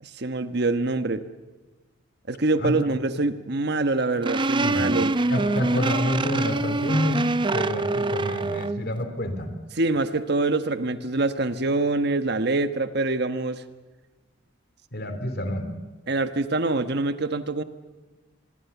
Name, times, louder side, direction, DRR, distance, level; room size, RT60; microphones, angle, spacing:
voice 1, 0.0-1.2 2.3-5.1 9.8-13.6 16.1-17.6, right 2 dB, 55° right, 10 dB, 1.2 m, -25 dB
sound 1, 4.2-8.8, right 2 dB, 25° right, 0.7 m, -25 dB
voice 2, 4.6-4.9 5.3-9.5 14.9-15.7, left 1 dB, 55° left, 8 dB, 3.4 m, -28 dB
25.5 x 22.5 x 7.1 m, 1.2 s
head